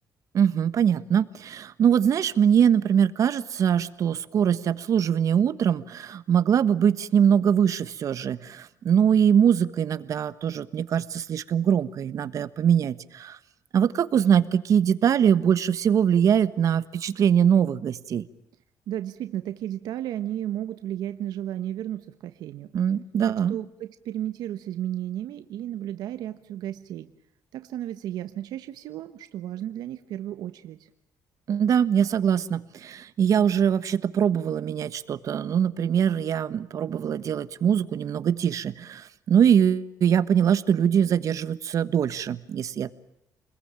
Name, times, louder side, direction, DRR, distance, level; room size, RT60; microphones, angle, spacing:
voice 1, 0.3-13.4 13.7-18.2 22.7-23.6 31.5-42.9, right 8 dB, 55° right, 14 dB, 1.3 m, -22 dB
voice 2, 18.9-22.8 23.2-27.1 27.5-30.9, right 12 dB, 85° right, 10 dB, 1.2 m, -33 dB
29.5 x 21.0 x 8.9 m, 0.81 s
cardioid pair, 130°, 7 cm